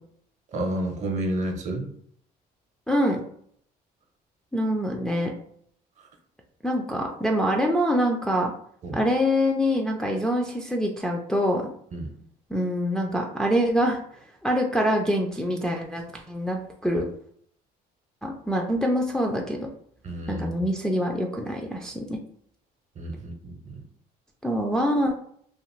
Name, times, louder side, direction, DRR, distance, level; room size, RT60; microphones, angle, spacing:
voice 1, 0.5-1.9 8.8-9.0 11.9-12.1 20.0-20.5 23.0-23.8, right 1 dB, 45° right, 3 dB, 0.7 m, -30 dB
voice 2, 2.9-3.2 4.5-5.3 6.6-8.5 8.9-11.6 12.5-14.0 14.4-17.1 18.2-19.7 20.3-22.2 24.4-25.1, equal, 5° left, 0 dB, 0.3 m, -25 dB
2.5 x 2.5 x 3.0 m, 0.64 s
cardioid pair, 110°, 17 cm